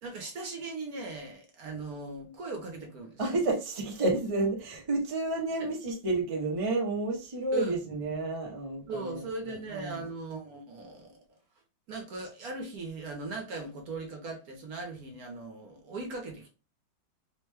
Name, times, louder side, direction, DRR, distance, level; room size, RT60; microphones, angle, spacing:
voice 1, 0.0-3.2 5.6-5.7 7.5-7.8 8.9-11.2 11.9-16.5, right 3 dB, 60° right, 2 dB, 1.1 m, -39 dB
voice 2, 3.2-10.0, right 2 dB, 35° right, 0 dB, 0.5 m, -30 dB
3.6 x 2.2 x 3.3 m, 0.32 s
omnidirectional pair, 2.0 m